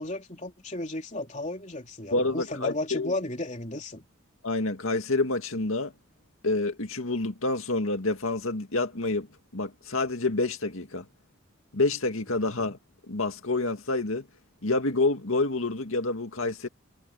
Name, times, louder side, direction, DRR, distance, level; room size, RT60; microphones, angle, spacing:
voice 1, 0.0-4.0, left 2 dB, 35° left, 3.3 m, -34 dB
voice 2, 2.1-3.1 4.4-5.9 6.4-9.3 9.5-11.0 11.7-12.8 13.1-14.3 14.6-16.7, left 2 dB, 90° left, 2.2 m, -28 dB
head